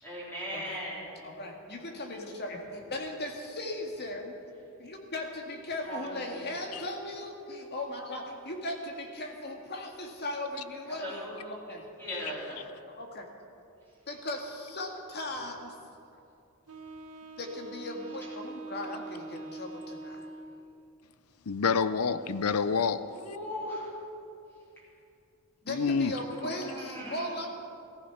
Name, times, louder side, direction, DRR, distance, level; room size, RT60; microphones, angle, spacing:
voice 1, 0.0-1.2 5.8-6.8 10.9-12.7 18.2-18.3 23.1-23.9 24.8-24.9 26.4-27.3, equal, 10° left, 3.4 m, -39 dB
voice 2, 1.2-4.4 4.8-11.8 12.9-13.3 14.1-15.8 17.4-20.3 25.6-27.5, left 1 dB, 50° left, 2.0 m, -38 dB
Wind instrument woodwind instrument, 16.7-20.8, right 2 dB, 70° right, 1.0 m, -43 dB
voice 3, 21.5-23.0 25.7-26.1, left 5 dB, 75° left, 0.6 m, -27 dB
15.0 x 14.5 x 5.8 m
head